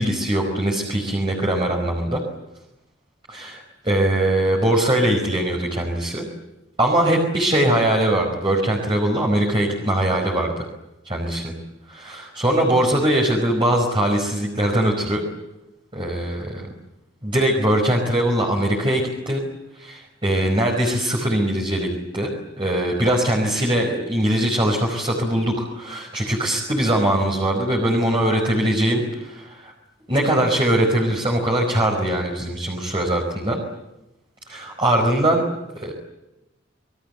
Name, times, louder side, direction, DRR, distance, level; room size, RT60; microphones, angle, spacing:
voice 1, 0.0-2.2 3.3-6.3 6.8-10.7 11.0-11.5 11.9-15.2 15.9-16.7 17.2-19.4 19.8-22.3 22.6-29.7 30.1-33.6 34.5-35.4 35.7-35.9, right 1 dB, 25° right, 0 dB, 4.9 m, -21 dB
29.0 x 22.5 x 8.1 m, 0.94 s
head